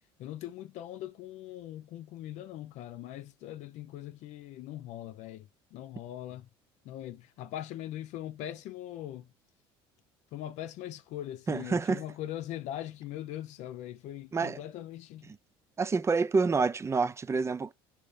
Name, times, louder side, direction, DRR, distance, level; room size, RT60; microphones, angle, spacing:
voice 1, 0.2-6.5 6.8-9.3 10.3-15.3, left 12 dB, 65° left, 0.6 m, -41 dB
voice 2, 11.5-12.0 14.3-14.6 15.3-15.4 15.8-17.7, right 4 dB, 20° right, 0.5 m, -28 dB
5.1 x 2.9 x 3.3 m
supercardioid pair, 80°, 13 cm